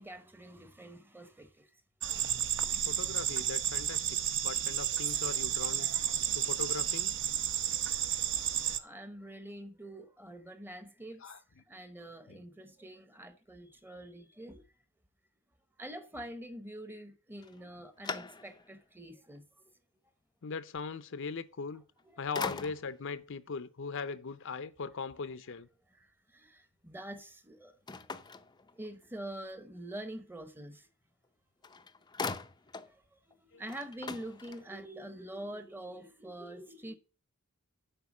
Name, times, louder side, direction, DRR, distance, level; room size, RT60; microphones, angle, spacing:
voice 1, 0.0-1.7 7.9-8.1 8.8-11.2 11.7-14.6 15.8-19.4 22.1-22.3 26.0-26.1 26.3-27.7 28.8-30.9 33.5-37.0, right 1 dB, 10° right, 0.9 m, -45 dB
sound 1, 2.0-8.8, right 10 dB, 60° right, 0.8 m, -32 dB
voice 2, 2.9-4.2 4.4-5.9 6.3-7.2 11.2-11.4 12.3-12.4 20.4-21.8 22.2-25.7 33.5-33.6, left 4 dB, 60° left, 0.6 m, -39 dB
sound 2, 17.4-18.8 19.4-19.5 21.7-22.0 22.3-23.1 27.9-29.1 31.2-31.3 31.6-33.0 33.3-33.4 33.6-34.9, left 4 dB, 20° left, 0.5 m, -41 dB
8.1 x 5.6 x 7.2 m
head